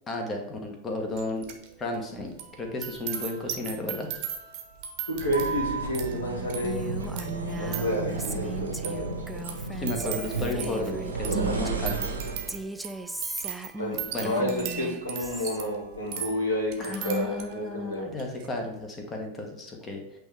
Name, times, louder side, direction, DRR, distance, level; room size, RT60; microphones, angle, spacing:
voice 1, 0.1-1.4 1.8-4.1 9.8-12.2 14.1-14.5 16.8-20.2, left 2 dB, 20° left, 2 dB, 1.3 m, -33 dB
sound 1, 1.2-1.7 1.9-17.7 18.1-18.5, right 9 dB, 45° right, 1.0 m, -39 dB
voice 2, 5.1-7.0 7.6-9.3 13.8-18.1, equal, 70° left, -2 dB, 2.2 m, -30 dB
sound 2, 5.1-12.6, right 4 dB, 75° right, 0.9 m, -32 dB
Female speech woman speaking, 6.6-12.0 12.5-15.6, right 2 dB, 5° right, 0.4 m, -38 dB
8.6 x 3.3 x 3.3 m, 0.98 s
figure-of-eight pair, 90°, 0 cm